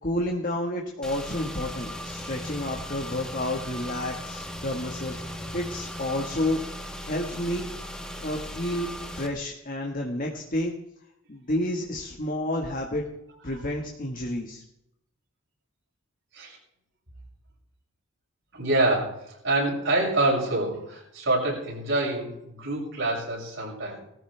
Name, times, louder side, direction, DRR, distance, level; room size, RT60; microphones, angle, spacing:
voice 1, 0.0-6.6 7.1-7.7 8.2-8.9 9.2-10.7 11.3-13.0 13.4-14.6, left 1 dB, 45° left, 1 dB, 1.5 m, -30 dB
Car / Engine, 1.0-9.3, equal, 5° left, 1.3 m, -37 dB
voice 2, 18.5-24.0, right 2 dB, 75° right, -3 dB, 6.7 m, -26 dB
19.5 x 14.0 x 3.4 m, 0.79 s
head